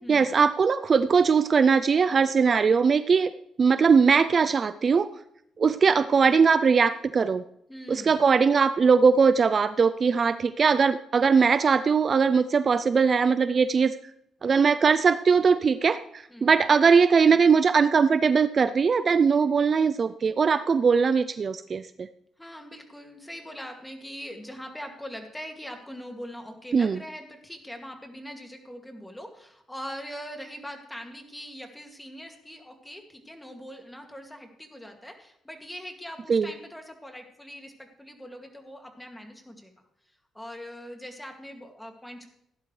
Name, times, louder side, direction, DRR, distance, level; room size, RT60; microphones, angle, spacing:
voice 1, 0.1-3.3 3.6-5.1 5.6-7.4 7.9-14.0 14.4-22.1 26.7-27.0 36.3-36.5, right 5 dB, 40° right, 13 dB, 0.4 m, -21 dB
voice 2, 7.7-8.2 16.3-16.6 22.4-39.7 40.3-42.3, equal, 5° left, 3 dB, 2.3 m, -42 dB
16.0 x 11.5 x 3.3 m, 0.75 s
cardioid pair, 90°, 0 cm